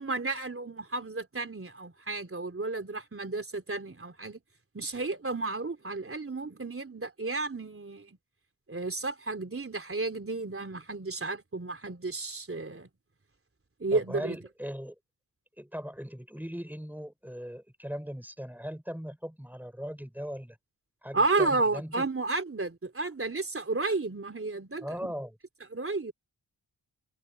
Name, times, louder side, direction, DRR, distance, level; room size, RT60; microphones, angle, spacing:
voice 1, 0.0-4.4 4.7-8.2 8.7-12.9 13.8-14.4 21.1-24.9 25.7-26.1, right 3 dB, 30° right, 3.4 m, -32 dB
voice 2, 13.9-15.0 15.6-20.6 21.0-22.1 24.8-25.4, equal, 5° right, 5.9 m, -39 dB
cardioid pair, 60°, 41 cm